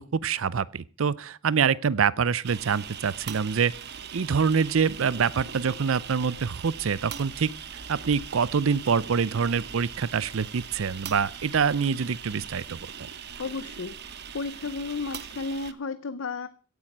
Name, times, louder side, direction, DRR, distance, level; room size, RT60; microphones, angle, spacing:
voice 1, 0.0-3.7 4.1-13.1, right 6 dB, 90° right, 0.5 m, -26 dB
sound 1, 2.4-15.7, right 7 dB, 55° right, 1.1 m, -40 dB
voice 2, 13.4-16.5, left 4 dB, 80° left, 0.7 m, -33 dB
16.5 x 8.7 x 6.1 m
head